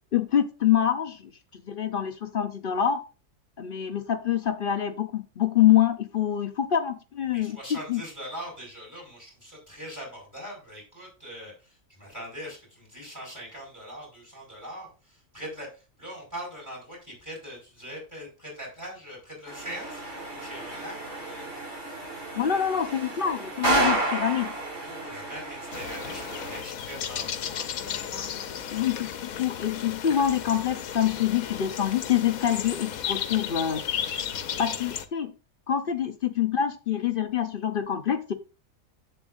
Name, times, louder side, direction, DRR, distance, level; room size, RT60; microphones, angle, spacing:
voice 1, 0.1-3.0 3.6-7.6 7.9-8.0 22.3-24.5 28.7-33.8 34.6-35.3 35.7-38.3, left 10 dB, 55° left, 8 dB, 0.6 m, -26 dB
voice 2, 7.3-21.5 24.8-28.3, equal, 10° right, -1 dB, 5.1 m, -42 dB
sound 1, 19.5-26.6, right 2 dB, 55° right, 5.9 m, -31 dB
sound 2, 25.7-35.0, left 9 dB, 80° left, 1.2 m, -34 dB
10.5 x 8.0 x 2.5 m, 0.31 s
omnidirectional pair, 1.5 m